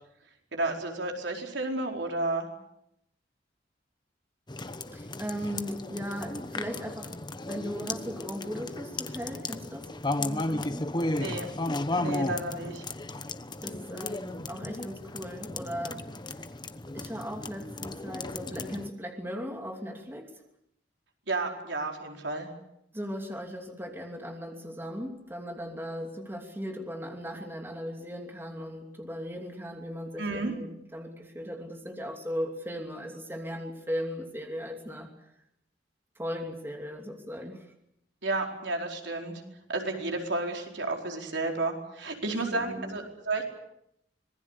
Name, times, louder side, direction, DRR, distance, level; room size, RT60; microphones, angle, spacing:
voice 1, 0.5-2.5 11.1-11.5 12.0-12.8 21.3-22.5 30.2-30.5 38.2-39.4 39.7-43.4, right 2 dB, 75° right, 2 dB, 4.6 m, -32 dB
sound 1, 4.5-18.9, left 2 dB, 25° left, 1.1 m, -35 dB
voice 2, 4.9-7.1 7.5-9.9 10.2-10.9 13.6-16.0 16.9-20.3 22.9-35.1 36.2-37.7 42.5-43.0, equal, 10° right, 3 dB, 2.8 m, -37 dB
26.0 x 20.5 x 8.2 m, 0.79 s
head